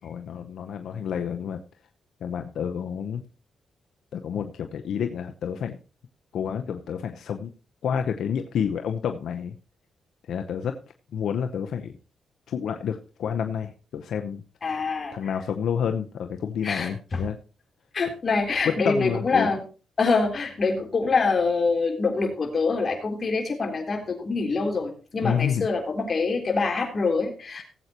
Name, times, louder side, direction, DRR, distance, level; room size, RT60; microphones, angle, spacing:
voice 1, 0.0-1.6 2.2-3.2 4.1-5.7 6.3-7.5 7.8-9.5 10.3-10.7 11.1-11.9 12.5-14.4 15.1-17.4 18.7-19.5 25.2-25.7, left 8 dB, 80° left, 6 dB, 0.8 m, -29 dB
voice 2, 14.6-15.3 16.6-17.2 17.9-19.6 20.0-27.6, left 4 dB, 40° left, 2 dB, 3.5 m, -25 dB
18.0 x 8.1 x 2.9 m, 0.35 s
cardioid pair, 105°, 0 cm